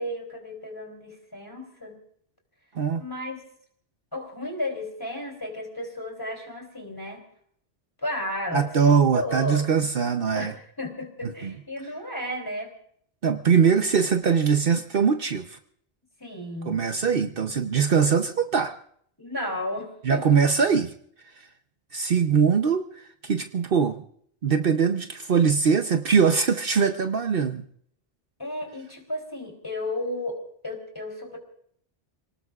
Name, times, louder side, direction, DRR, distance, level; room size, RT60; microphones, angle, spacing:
voice 1, 0.0-2.0 3.0-3.4 4.1-7.2 8.0-9.6 10.3-12.7 13.7-13.9 16.2-16.8 19.2-20.3 28.4-31.4, left 1 dB, 20° left, 2 dB, 3.4 m, -33 dB
voice 2, 8.5-10.5 11.4-11.5 13.2-15.6 16.7-18.7 20.0-20.9 21.9-22.9 23.2-24.0 24.4-27.6, right 6 dB, 60° right, 6 dB, 1.0 m, -22 dB
29.0 x 19.0 x 2.4 m, 0.64 s
omnidirectional pair, 1.1 m